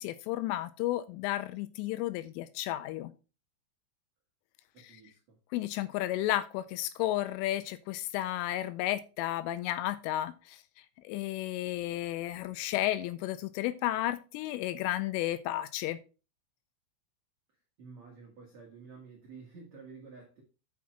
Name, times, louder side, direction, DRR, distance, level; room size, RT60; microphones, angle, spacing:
voice 1, 0.0-3.1 4.8-4.9 5.5-10.6 11.0-16.0, left 14 dB, 85° left, 3.0 m, -33 dB
voice 2, 4.7-5.4 17.8-20.4, right 4 dB, 85° right, 1.5 m, -51 dB
8.6 x 5.7 x 4.5 m
omnidirectional pair, 5.8 m